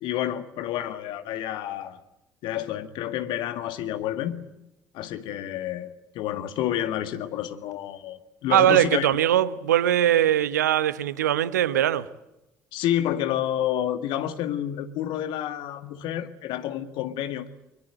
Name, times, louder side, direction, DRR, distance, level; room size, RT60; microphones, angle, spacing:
voice 1, 0.0-2.0 2.4-4.4 4.9-9.1 12.7-17.5, left 11 dB, 60° left, 1.8 m, -29 dB
voice 2, 8.5-12.1, right 11 dB, 75° right, 1.0 m, -21 dB
23.0 x 23.0 x 8.9 m
figure-of-eight pair, 55°, 9 cm